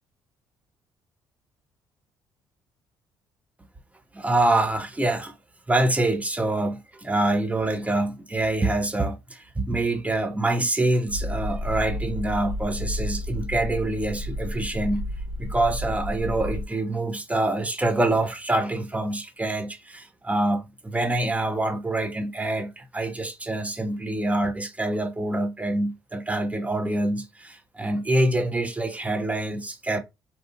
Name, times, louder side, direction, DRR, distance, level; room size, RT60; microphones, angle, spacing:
voice 1, 4.1-5.3 5.7-15.1 15.4-30.0, right 2 dB, 15° right, 0.6 m, -25 dB
sound 1, 11.1-16.6, left 1 dB, 75° right, 1.0 m, -31 dB
2.8 x 2.3 x 2.4 m
hypercardioid pair, 50°, 11 cm